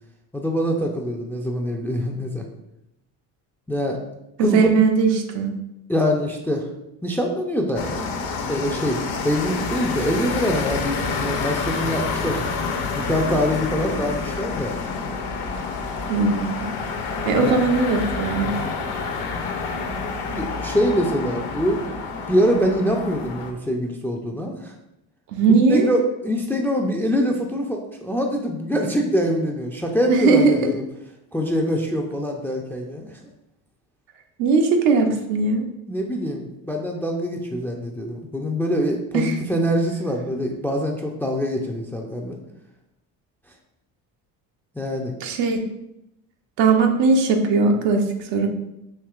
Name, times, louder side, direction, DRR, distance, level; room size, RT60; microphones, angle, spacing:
voice 1, 0.3-2.4 3.7-4.0 4.4-4.7 5.9-6.7 7.0-8.1 8.5-12.4 13.0-14.8 17.3-17.6 20.3-21.8 22.3-24.7 25.7-30.8 31.3-33.2 35.9-42.4 44.8-45.2, equal, 5° left, 1 dB, 0.4 m, -24 dB
voice 2, 4.4-5.5 16.1-16.6 17.3-18.5 25.3-25.9 30.1-30.6 34.4-35.7 39.1-39.3 45.2-45.7 46.6-48.0 48.3-48.5, right 4 dB, 70° right, 4 dB, 0.7 m, -19 dB
sound 1, 7.8-23.5, left 4 dB, 55° left, 0.7 m, -28 dB
4.5 x 2.9 x 2.3 m, 0.87 s
hypercardioid pair, 65°, 45 cm